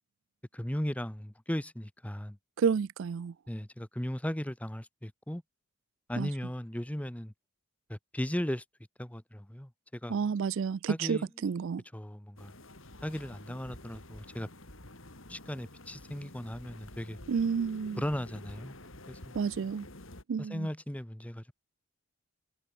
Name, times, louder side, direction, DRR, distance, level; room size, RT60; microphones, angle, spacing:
voice 1, 0.5-2.4 3.5-5.4 6.1-7.3 7.9-8.6 9.0-10.1 10.9-11.3 11.9-12.5 13.0-14.5 15.3-17.2 18.0-18.8 19.1-19.4 20.5-21.5, equal, 5° left, 0.8 m, -36 dB
voice 2, 2.6-3.3 6.2-6.3 10.1-11.8 17.3-18.0 19.3-19.9 20.3-20.7, right 6 dB, 60° right, 0.4 m, -30 dB
sound 1, 12.4-20.2, left 1 dB, 60° left, 4.5 m, -49 dB
head